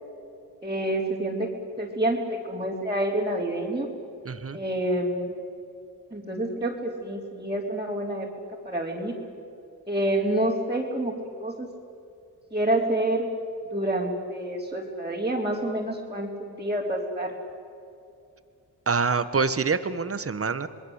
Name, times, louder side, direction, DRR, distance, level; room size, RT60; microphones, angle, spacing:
voice 1, 0.6-1.5 1.8-3.9 4.5-5.3 6.1-8.3 8.6-9.1 9.9-11.1 11.4-11.7 12.5-13.3 13.7-17.3, right 1 dB, 15° right, -4 dB, 3.9 m, -28 dB
voice 2, 4.2-4.6 18.9-20.7, right 5 dB, 35° right, 12 dB, 1.5 m, -26 dB
27.5 x 21.0 x 8.2 m, 2.6 s
cardioid pair, 70°, 40 cm